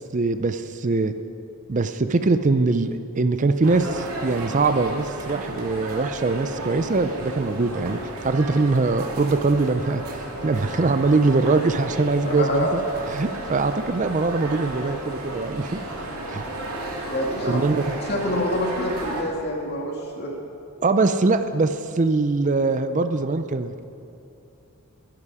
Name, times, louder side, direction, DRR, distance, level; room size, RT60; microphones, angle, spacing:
voice 1, 0.1-1.1 1.7-8.0 8.2-12.8 13.1-15.8 16.3-16.4 17.5-17.8 20.8-23.8, right 3 dB, 35° right, 10 dB, 0.5 m, -22 dB
sound 1, 3.6-19.2, right 1 dB, 75° right, 2.5 m, -33 dB
voice 2, 12.2-12.7 17.1-17.6 18.1-20.3, left 1 dB, 45° left, 0 dB, 2.4 m, -26 dB
22.0 x 11.0 x 4.9 m, 2.6 s
head